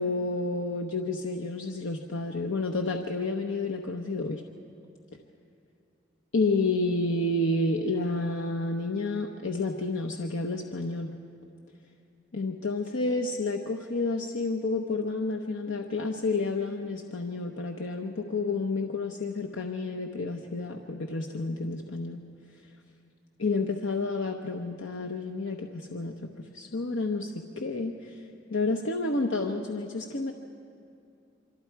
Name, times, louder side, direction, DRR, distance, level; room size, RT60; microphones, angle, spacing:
voice 1, 0.0-4.4 6.3-11.1 12.3-22.2 23.4-26.1 26.5-28.2 28.5-30.3, left 3 dB, 80° left, 2 dB, 1.0 m, -30 dB
26.0 x 25.0 x 4.7 m, 2.5 s
head